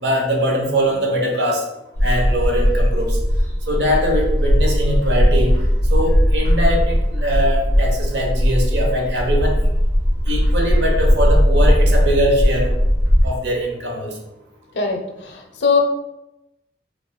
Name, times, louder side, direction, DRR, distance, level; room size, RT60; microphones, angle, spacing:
voice 1, 0.0-1.6 2.0-3.2 3.7-5.5 5.9-9.6 10.3-12.7 13.2-14.1, equal, 75° right, 1 dB, 0.9 m, -21 dB
Bird, 1.9-13.3, equal, 15° left, 1.1 m, -17 dB
voice 2, 14.7-15.8, left 5 dB, 90° left, 3 dB, 0.7 m, -20 dB
4.7 x 3.1 x 2.2 m, 0.90 s
head